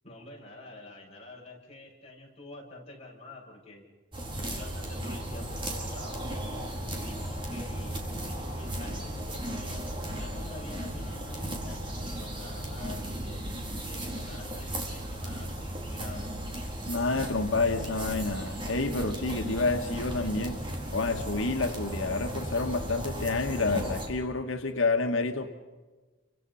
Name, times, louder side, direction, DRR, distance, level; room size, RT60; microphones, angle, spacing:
voice 1, 0.0-3.8 4.4-8.0 8.5-13.5 13.9-16.3, left 2 dB, 30° left, -2 dB, 7.7 m, -47 dB
sound 1, 4.1-24.1, right 1 dB, 25° right, 4.4 m, -35 dB
voice 2, 16.9-20.6 20.9-25.5, left 3 dB, 90° left, 5 dB, 1.6 m, -29 dB
29.5 x 25.5 x 5.7 m, 1.3 s
head